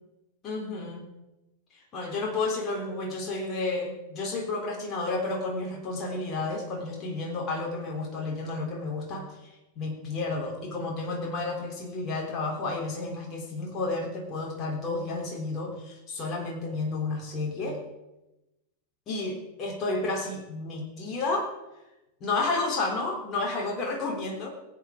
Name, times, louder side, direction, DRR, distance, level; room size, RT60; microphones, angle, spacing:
voice 1, 0.4-1.1 1.9-9.3 9.8-17.8 19.1-21.5 22.2-24.5, left 3 dB, 30° left, -1 dB, 3.5 m, -31 dB
22.0 x 8.6 x 5.0 m, 0.99 s
figure-of-eight pair, 90°, 0 cm